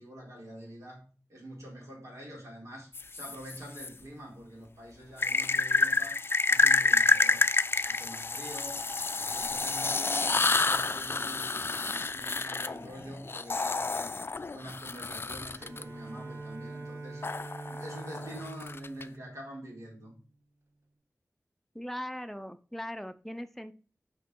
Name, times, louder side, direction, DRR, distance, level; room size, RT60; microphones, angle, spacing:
voice 1, 0.0-7.5 7.8-8.8 9.2-11.6 12.1-14.1 14.5-17.2 17.7-20.2, equal, 80° right, -2 dB, 3.5 m, -46 dB
Alien thermos, 2.9-3.9 5.2-15.8 17.2-19.0, left 4 dB, 50° left, 0.4 m, -28 dB
Bowed string instrument, 15.6-20.2, right 2 dB, 55° right, 1.6 m, -44 dB
voice 2, 21.7-23.7, equal, 5° left, 9 dB, 0.7 m, -39 dB
6.4 x 5.1 x 4.7 m, 0.36 s
wide cardioid pair, 70°, 5 cm